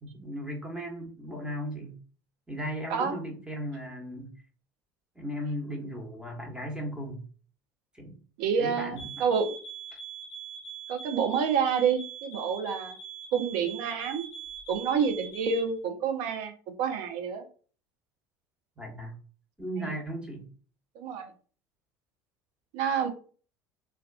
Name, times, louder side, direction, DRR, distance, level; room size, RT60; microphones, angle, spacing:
voice 1, 0.0-2.0 2.5-4.3 5.1-7.2 7.9-8.2 8.6-9.2 18.8-19.2 19.6-20.5, equal, 10° right, 1 dB, 1.0 m, -36 dB
voice 2, 8.4-9.5 10.9-13.0 13.3-14.2 14.7-16.5 16.8-17.4 21.0-21.3 22.7-23.1, right 6 dB, 65° right, 6 dB, 0.6 m, -28 dB
sound 1, 9.0-15.7, right 6 dB, 60° left, 0.5 m, -42 dB
2.3 x 2.3 x 2.3 m, 0.40 s
hypercardioid pair, 70°, 11 cm